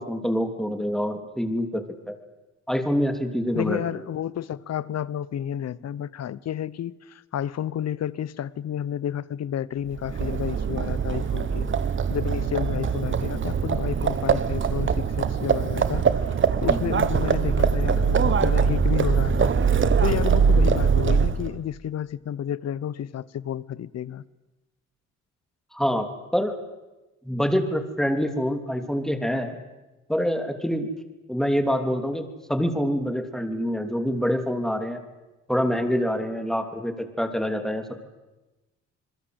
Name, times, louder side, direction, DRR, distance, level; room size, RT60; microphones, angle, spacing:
voice 1, 0.0-2.1 2.7-3.8 16.7-17.0 25.7-26.1 26.3-26.6 27.2-29.6 30.1-30.9 31.3-35.0 35.5-38.0, equal, ahead, 3.2 m, -26 dB
voice 2, 3.5-11.7 12.1-16.2 16.6-24.2, left 10 dB, 60° left, 1.0 m, -31 dB
Livestock farm animals working animals, 9.9-21.6, right 6 dB, 40° right, 1.3 m, -22 dB
27.5 x 21.5 x 8.1 m
cardioid pair, 90°, 30 cm